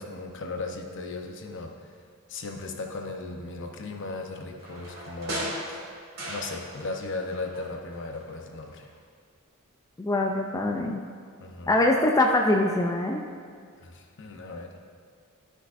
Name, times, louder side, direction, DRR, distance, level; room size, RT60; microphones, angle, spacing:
voice 1, 0.0-1.9 2.3-5.8 6.2-8.9 11.4-11.8 13.8-14.7, left 3 dB, 60° left, 2 dB, 0.8 m, -37 dB
sound 1, 4.6-7.0 7.3-8.4 8.7-8.8, right 1 dB, 50° right, 1.8 m, -37 dB
voice 2, 10.0-11.0 11.7-13.2, left 1 dB, 15° left, 1 dB, 0.4 m, -23 dB
12.5 x 6.3 x 2.5 m, 2.1 s
head